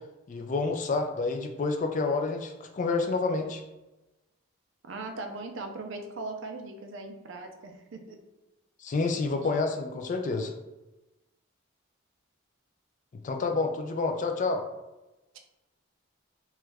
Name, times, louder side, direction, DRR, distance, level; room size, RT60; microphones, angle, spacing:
voice 1, 0.3-3.6 8.8-10.5 13.2-14.6, left 3 dB, 35° left, 5 dB, 0.3 m, -29 dB
voice 2, 4.8-8.2, right 3 dB, 60° right, 4 dB, 0.4 m, -39 dB
3.0 x 2.3 x 3.2 m, 1.0 s
head